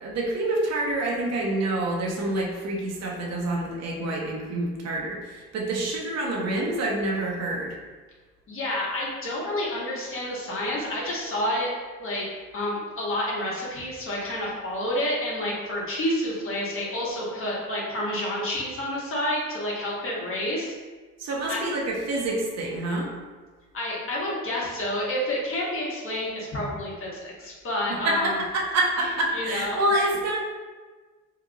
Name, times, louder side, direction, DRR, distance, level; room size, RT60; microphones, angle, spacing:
voice 1, 0.0-7.8 21.2-23.1 28.0-30.4, right 2 dB, 60° right, -2 dB, 0.8 m, -27 dB
voice 2, 8.5-11.7 12.0-12.3 12.5-20.7 21.5-21.7 23.7-28.4 29.3-29.8, left 1 dB, 45° left, -5 dB, 1.2 m, -29 dB
2.9 x 2.3 x 3.9 m, 1.3 s
cardioid pair, 90°, 30 cm